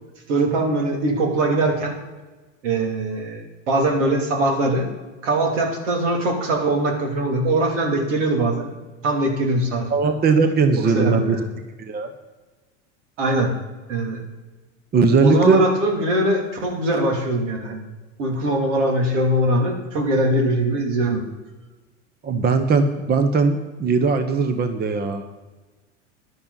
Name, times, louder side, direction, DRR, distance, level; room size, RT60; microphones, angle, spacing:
voice 1, 0.3-1.9 2.6-4.9 5.2-8.7 9.0-10.1 10.9-11.4 13.2-13.5 13.9-14.2 15.2-17.8 18.2-21.2, right 1 dB, 75° right, 2 dB, 3.1 m, -21 dB
voice 2, 9.9-11.4 11.8-12.1 14.9-15.6 22.2-25.2, right 4 dB, 25° right, 9 dB, 1.0 m, -19 dB
14.5 x 11.0 x 4.1 m, 1.2 s
hypercardioid pair, 100°, 37 cm